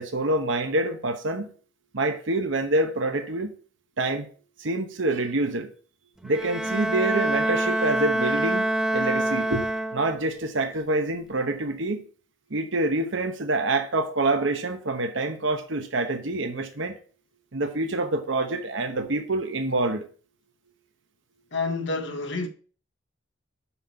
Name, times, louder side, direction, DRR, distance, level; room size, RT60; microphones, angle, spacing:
voice 1, 0.0-1.5 1.9-3.5 4.0-4.3 4.6-5.7 6.2-8.7 8.9-9.6 9.9-12.0 12.5-16.9 17.5-20.1, right 2 dB, 70° right, 1.0 m, -26 dB
Bowed string instrument, 6.2-10.3, right 1 dB, 5° right, 0.4 m, -26 dB
voice 2, 21.5-22.5, left 3 dB, 65° left, 1.3 m, -28 dB
5.8 x 5.7 x 7.0 m
head